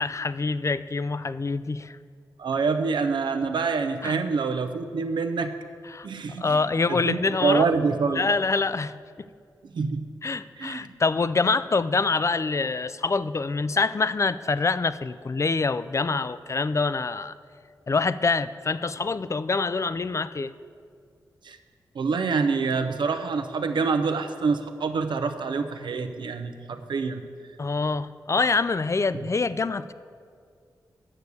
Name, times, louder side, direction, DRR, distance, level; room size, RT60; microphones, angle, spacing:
voice 1, 0.0-2.0 4.0-4.2 5.9-6.1 6.4-7.7 8.1-8.9 9.2-9.3 10.2-17.3 17.9-20.5 27.6-29.9, left 4 dB, 40° left, 15 dB, 0.4 m, -25 dB
voice 2, 2.4-5.5 6.0-6.6 6.9-8.3 9.6-10.1 10.6-10.9 21.4-21.6 21.9-27.2 29.1-29.3, right 4 dB, 75° right, 8 dB, 0.7 m, -26 dB
8.8 x 6.8 x 8.0 m, 2.2 s
supercardioid pair, 40°, 8 cm